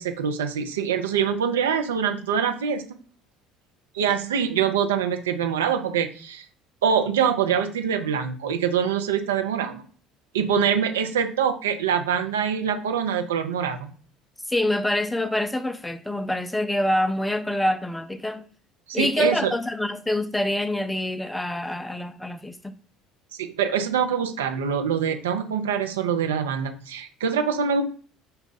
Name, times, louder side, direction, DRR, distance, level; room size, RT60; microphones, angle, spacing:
voice 1, 0.0-2.9 3.9-6.4 6.8-9.8 10.3-13.9 18.9-19.5 23.3-27.8, right 7 dB, 75° right, 0.5 m, -24 dB
voice 2, 14.5-18.4 18.9-22.7, left 1 dB, 10° left, 0.4 m, -26 dB
5.4 x 2.3 x 3.9 m
figure-of-eight pair, 60°, 0 cm